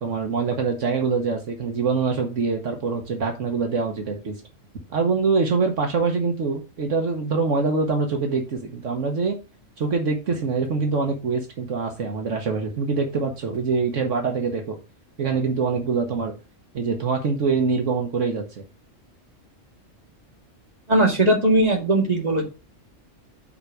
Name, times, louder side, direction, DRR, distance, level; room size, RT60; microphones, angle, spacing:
voice 1, 0.0-4.4 4.9-9.4 9.8-14.8 15.2-16.3 16.7-18.6, right 4 dB, 70° right, 3 dB, 1.5 m, -24 dB
voice 2, 20.9-22.4, right 1 dB, 30° right, -1 dB, 2.4 m, -19 dB
5.8 x 4.8 x 6.4 m, 0.30 s
omnidirectional pair, 1.3 m